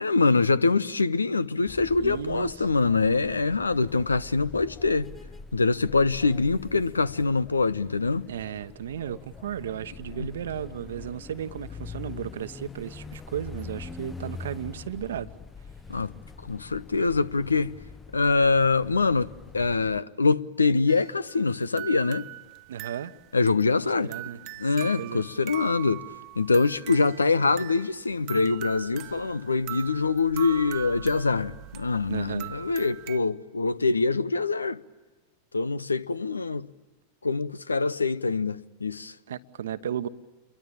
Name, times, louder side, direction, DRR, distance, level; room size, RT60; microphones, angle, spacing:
voice 1, 0.0-5.1 5.5-8.3 10.2-10.3 15.9-16.1 16.4-17.7 18.1-22.3 23.3-24.1 24.6-26.0 26.3-34.8 35.5-36.7 37.2-39.2, left 4 dB, 80° left, 0.8 m, -24 dB
sound 1, 1.7-20.0, left 4 dB, 15° left, 0.8 m, -44 dB
voice 2, 2.0-2.7 8.3-15.3 22.7-23.1 24.0-25.3 32.1-32.5 39.3-40.1, right 9 dB, 60° right, 1.1 m, -35 dB
sound 2, 20.9-33.2, right 19 dB, 40° right, 0.8 m, -42 dB
28.5 x 23.0 x 8.7 m
figure-of-eight pair, 90°, 0 cm